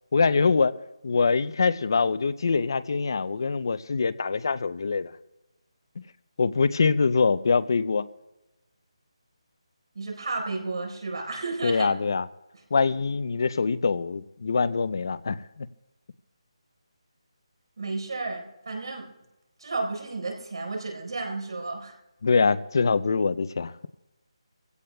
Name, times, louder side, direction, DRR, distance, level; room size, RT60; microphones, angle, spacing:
voice 1, 0.1-0.8 1.0-5.1 6.4-8.1 11.6-12.3 12.7-15.7 22.2-23.9, left 4 dB, 40° left, 0.5 m, -24 dB
voice 2, 9.9-11.9 17.8-19.1 19.6-21.9, right 3 dB, 55° right, 4.1 m, -32 dB
25.0 x 16.5 x 2.2 m
figure-of-eight pair, 175°, 3 cm